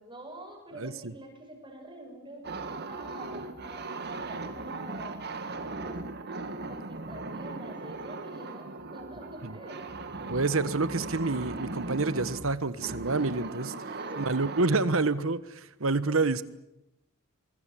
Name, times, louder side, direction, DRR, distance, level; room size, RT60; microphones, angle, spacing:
voice 1, 0.0-2.4 2.8-5.1 5.8-6.0 6.7-9.8 13.9-14.3, right 1 dB, 25° right, 1 dB, 6.8 m, -46 dB
voice 2, 0.7-1.1 9.4-9.5 10.3-16.4, right 3 dB, 70° right, 14 dB, 1.3 m, -28 dB
sound 1, 2.4-14.6, right 3 dB, 50° right, 2.1 m, -38 dB
24.0 x 23.5 x 8.6 m, 0.86 s
head